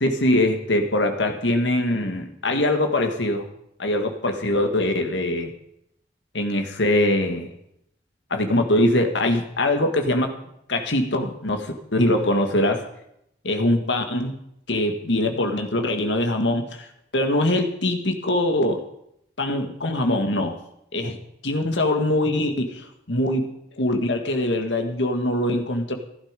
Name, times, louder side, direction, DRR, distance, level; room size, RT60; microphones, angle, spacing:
voice 1, 0.0-3.5 3.8-5.5 6.3-7.5 8.3-10.4 10.7-12.9 13.4-14.3 14.7-16.9 17.1-18.8 19.4-20.6 20.9-21.2 21.4-23.5 23.8-25.9, left 1 dB, 80° left, 5 dB, 2.0 m, -22 dB
15.5 x 12.0 x 5.3 m, 0.78 s
head